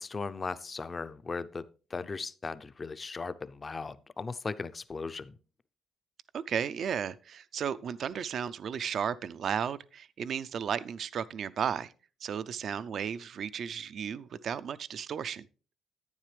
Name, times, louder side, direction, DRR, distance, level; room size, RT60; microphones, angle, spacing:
voice 1, 0.0-1.7 1.9-5.4, left 4 dB, 30° left, 0.5 m, -37 dB
voice 2, 6.3-11.9 12.2-15.5, right 8 dB, 60° right, 0.4 m, -34 dB
10.5 x 9.2 x 3.3 m
cardioid pair, 90°, 0 cm